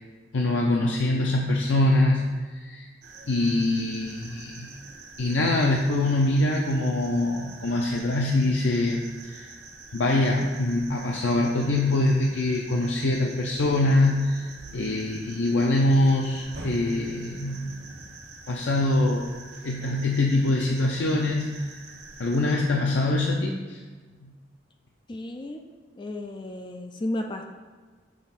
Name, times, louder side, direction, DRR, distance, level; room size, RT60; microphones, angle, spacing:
voice 1, 0.3-2.9 3.3-4.7 5.2-9.5 9.9-17.8 18.5-19.2 19.6-21.7 22.2-23.8 24.2-24.3, left 2 dB, 80° left, 0 dB, 0.5 m, -24 dB
sound 1, 3.0-22.6, right 3 dB, 60° right, 0.9 m, -45 dB
voice 2, 25.1-25.6 26.0-27.4, left 1 dB, 25° left, 4 dB, 0.4 m, -33 dB
6.3 x 3.4 x 5.7 m, 1.4 s
head